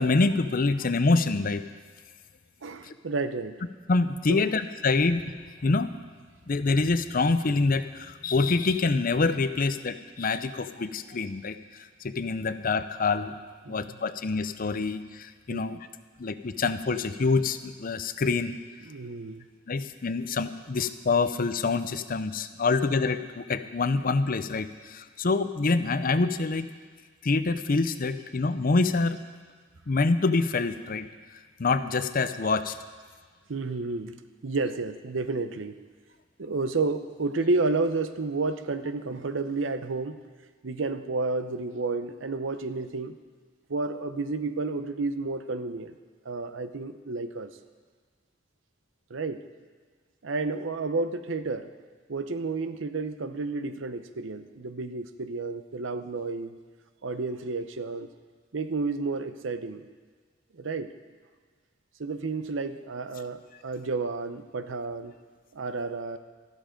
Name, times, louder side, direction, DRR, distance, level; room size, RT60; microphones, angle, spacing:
voice 1, 0.0-1.6 2.9-3.0 3.9-5.3 5.6-5.9 6.5-11.5 12.0-13.3 13.7-15.8 16.2-18.6 19.7-26.7 27.2-29.2 29.9-31.1 31.6-32.7, left 3 dB, 50° left, 11 dB, 0.6 m, -26 dB
voice 2, 2.6-3.6 4.3-4.5 13.6-14.0 15.5-15.8 18.8-19.5 33.5-35.8 36.4-40.2 40.6-43.2 43.7-46.0 46.2-47.6 49.1-49.4 50.2-51.7 52.1-56.6 57.0-58.1 58.5-59.8 60.5-60.9 62.0-65.1 65.5-66.2, right 3 dB, 85° right, 11 dB, 0.7 m, -31 dB
13.5 x 12.5 x 5.2 m, 1.5 s
head